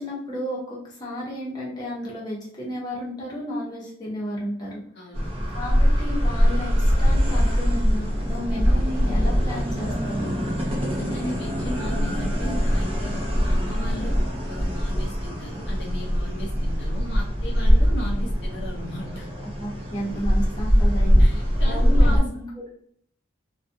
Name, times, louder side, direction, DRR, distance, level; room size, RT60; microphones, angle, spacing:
voice 1, 0.0-4.8 5.5-10.3 19.6-21.2 21.6-22.5, left 1 dB, 20° left, -6 dB, 0.8 m, -32 dB
voice 2, 5.0-5.3 10.8-19.3 20.1-20.2 21.2-22.4, equal, 60° left, -1 dB, 0.5 m, -37 dB
sound 1, 5.1-22.2, equal, 30° right, 0.7 m, -22 dB
2.4 x 2.2 x 2.6 m, 0.64 s
head